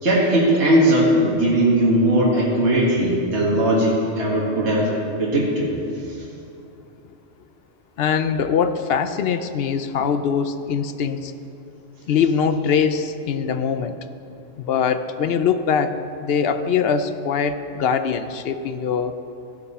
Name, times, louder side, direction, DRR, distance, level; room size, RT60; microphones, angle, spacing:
voice 1, 0.0-4.9 5.2-5.7, right 1 dB, 60° right, -5 dB, 1.9 m, -18 dB
voice 2, 8.0-11.3 12.1-14.0 14.6-19.2, left 6 dB, 60° left, 10 dB, 0.7 m, -22 dB
14.5 x 11.0 x 4.2 m, 2.8 s
omnidirectional pair, 1.3 m